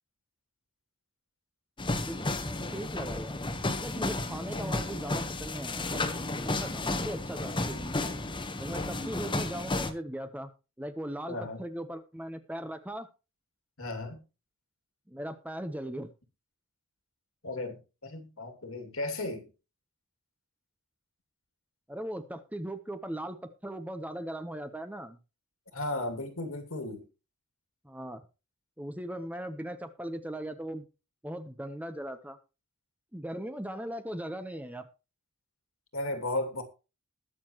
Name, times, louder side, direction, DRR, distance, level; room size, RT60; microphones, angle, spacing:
sound 1, 1.8-9.9, left 2 dB, 20° left, 1.2 m, -33 dB
voice 1, 2.0-3.5 3.8-6.1 6.5-7.9 8.6-10.5 10.8-13.1 15.1-16.1 21.9-23.4 23.6-25.2 27.8-28.2 28.8-30.9 31.2-32.4 33.1-34.9, right 1 dB, 5° right, 0.9 m, -39 dB
voice 2, 11.3-11.6 13.8-14.2 17.4-19.5 25.7-27.0 35.9-36.6, left 2 dB, 70° left, 2.6 m, -35 dB
20.5 x 6.9 x 3.0 m
head